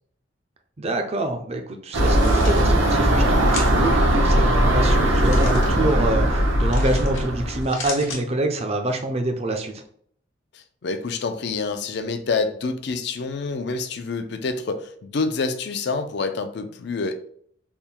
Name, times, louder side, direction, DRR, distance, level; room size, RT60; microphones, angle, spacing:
voice 1, 0.8-9.8, right 2 dB, 30° right, 5 dB, 0.5 m, -26 dB
sound 1, 1.9-7.7, right 1 dB, 85° right, 0.9 m, -19 dB
sound 2, 2.1-2.6 3.5-3.9 5.1-5.7 6.7-7.2 7.6-8.2, left 4 dB, 85° left, 1.1 m, -35 dB
voice 2, 10.5-17.2, left 4 dB, 55° left, 9 dB, 0.4 m, -27 dB
3.5 x 2.1 x 4.4 m, 0.62 s
head